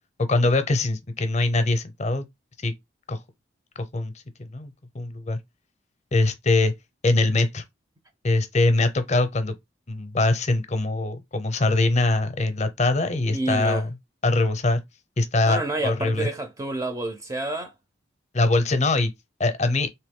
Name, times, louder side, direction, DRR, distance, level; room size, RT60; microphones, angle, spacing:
voice 1, 0.3-2.2 2.6-2.7 3.1-3.2 3.9-4.1 4.4-5.4 6.1-6.7 7.0-7.6 8.2-9.5 9.9-13.9 14.2-14.8 15.2-16.3 18.3-19.1 19.4-19.9, left 2 dB, 35° left, 0.6 m, -22 dB
voice 2, 13.3-13.9 15.5-17.7, right 2 dB, 15° right, 0.5 m, -29 dB
3.4 x 2.9 x 3.6 m
head